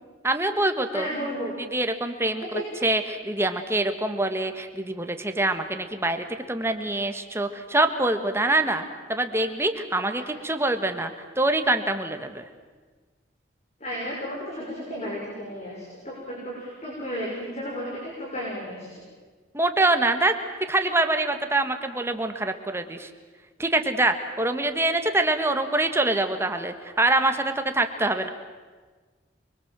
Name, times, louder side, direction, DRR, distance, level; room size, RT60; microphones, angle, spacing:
voice 1, 0.2-1.1 1.7-8.8 9.1-11.1 11.4-12.4 19.5-20.4 20.7-23.1 23.6-28.3, right 2 dB, 15° right, 7 dB, 1.5 m, -25 dB
voice 2, 0.9-1.5 2.4-2.6 13.8-19.0, equal, 35° left, -3 dB, 6.4 m, -33 dB
29.5 x 23.0 x 7.5 m, 1.4 s
head